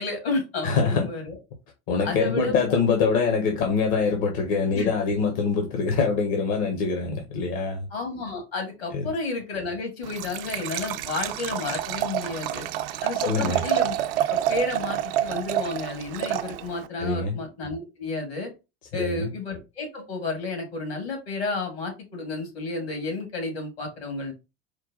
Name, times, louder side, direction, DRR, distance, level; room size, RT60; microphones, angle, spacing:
voice 1, 0.0-1.4 2.0-2.6 4.7-4.9 7.9-12.7 13.0-13.9 14.3-18.5 18.9-24.3, left 3 dB, 75° left, 1.9 m, -31 dB
voice 2, 0.6-1.1 1.9-7.9 8.9-9.1 13.2-13.8 17.0-17.4 18.9-19.3, left 5 dB, 60° left, 0.9 m, -24 dB
Liquid, 10.0-16.9, right 12 dB, 60° right, 0.5 m, -28 dB
4.6 x 2.2 x 3.8 m
figure-of-eight pair, 70°, 32 cm